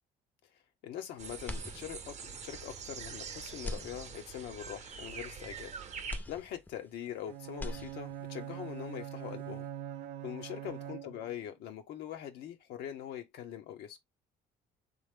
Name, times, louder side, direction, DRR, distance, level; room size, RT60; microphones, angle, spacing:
voice 1, 0.8-9.7 10.2-14.0, left 10 dB, 80° left, 0.8 m, -43 dB
sound 1, 1.2-6.2, right 6 dB, 45° right, 0.7 m, -44 dB
sound 2, 1.4-2.3 2.8-2.9 3.5-4.6 6.1-7.2 7.5-8.4, left 1 dB, 10° left, 0.5 m, -42 dB
Bowed string instrument, 7.3-11.5, right 11 dB, 80° right, 0.5 m, -43 dB
3.2 x 2.0 x 3.6 m
cardioid pair, 110°, 17 cm